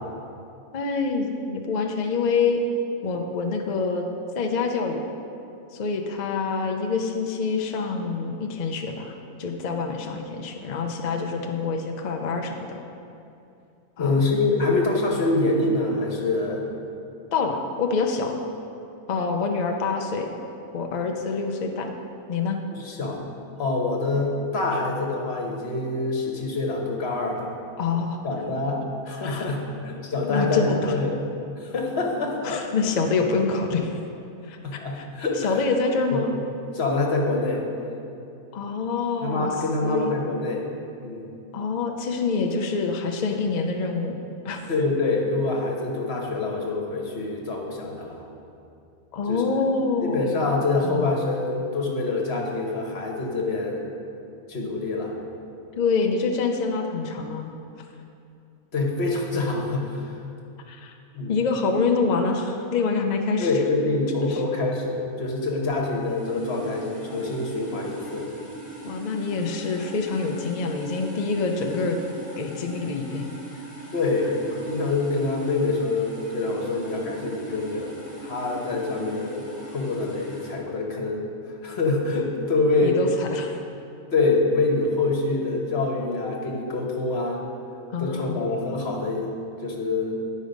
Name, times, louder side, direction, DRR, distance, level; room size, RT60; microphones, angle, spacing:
voice 1, 0.7-2.6 3.0-4.1 4.4-5.0 5.7-12.8 14.0-14.2 17.3-18.4 19.1-20.3 20.7-21.9 22.3-22.6 27.8-28.2 29.2-29.5 30.3-31.0 32.4-34.0 34.4-35.0 35.4-36.3 38.5-39.5 39.8-40.1 41.5-44.2 44.4-44.6 49.1-50.4 50.8-51.0 55.8-57.5 60.7-60.9 61.3-63.5 64.3-64.4 68.8-72.0 72.4-73.3 82.8-83.6 87.9-88.4, left 4 dB, 70° left, 3 dB, 0.4 m, -26 dB
voice 2, 14.0-16.6 22.7-23.2 23.6-27.5 28.2-31.2 31.6-32.6 34.6-35.5 36.1-36.2 36.7-37.6 39.2-40.7 41.0-41.2 44.7-48.2 49.3-49.6 50.0-53.9 54.5-55.1 58.7-60.2 61.1-61.4 63.4-68.3 73.9-79.4 79.7-83.0 84.1-87.4 88.0-89.3 89.6-90.1, left 3 dB, 45° left, -1 dB, 1.3 m, -25 dB
sound 1, 65.9-80.6, right 1 dB, 5° right, 1.9 m, -40 dB
9.8 x 5.2 x 5.2 m, 2.6 s
omnidirectional pair, 1.6 m